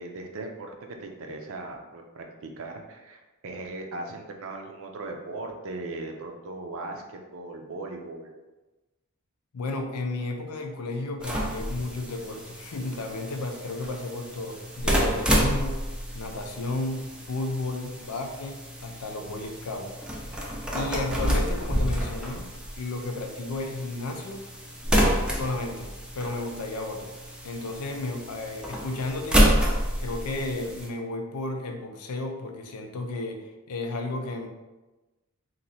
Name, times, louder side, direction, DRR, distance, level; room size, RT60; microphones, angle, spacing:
voice 1, 0.0-8.3, right 2 dB, 65° right, 3 dB, 0.5 m, -38 dB
voice 2, 9.5-15.9 16.1-18.6 18.8-19.9 20.7-24.4 25.2-25.9 26.1-27.1 27.4-29.5 30.0-34.5, left 2 dB, 85° left, 4 dB, 0.5 m, -33 dB
sound 1, 11.2-30.9, equal, 5° right, 0.5 m, -29 dB
3.0 x 2.6 x 4.0 m, 1.1 s
head